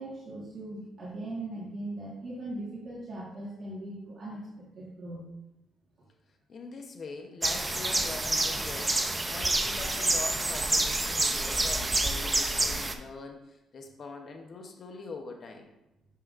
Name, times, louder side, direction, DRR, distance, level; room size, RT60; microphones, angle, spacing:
voice 1, 0.0-5.3, right 1 dB, 50° right, -5 dB, 1.6 m, -39 dB
voice 2, 6.5-15.7, left 3 dB, 50° left, 3 dB, 0.8 m, -43 dB
sound 1, 7.4-12.9, right 2 dB, 20° right, 0.5 m, -28 dB
7.0 x 5.6 x 2.5 m, 0.90 s
cardioid pair, 90°, 0 cm